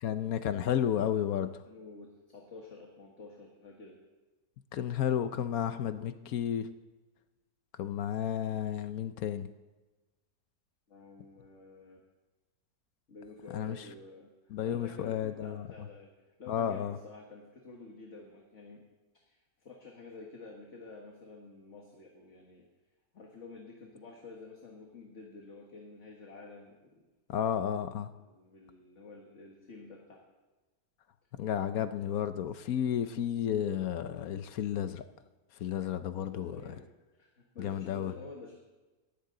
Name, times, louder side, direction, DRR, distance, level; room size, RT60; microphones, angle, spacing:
voice 1, 0.0-1.5 4.7-6.7 7.8-9.5 13.5-13.8 14.5-15.6 16.5-16.9 27.3-28.1 31.4-35.0 35.6-36.6 37.6-38.1, left 9 dB, 65° left, 11 dB, 1.1 m, -32 dB
voice 2, 1.4-4.0 10.9-12.0 13.1-18.8 19.1-22.7 23.1-27.0 28.2-30.2 36.2-36.9 37.1-38.6, left 3 dB, 45° left, 0 dB, 1.9 m, -50 dB
18.0 x 14.0 x 3.8 m, 1.2 s
omnidirectional pair, 1.8 m